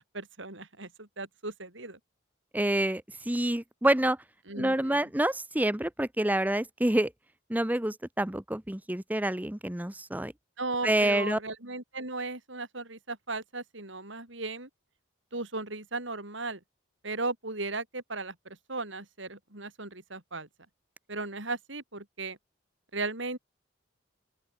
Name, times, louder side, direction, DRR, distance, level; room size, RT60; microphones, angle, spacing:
voice 1, 0.0-2.0 4.5-5.0 10.6-14.7 15.3-16.6 17.0-20.5 21.1-22.4 22.9-23.4, right 3 dB, 70° right, 5.3 m, -36 dB
voice 2, 2.5-4.2 4.6-7.1 7.5-10.3 10.8-11.4, right 1 dB, 10° right, 0.8 m, -27 dB
open air
head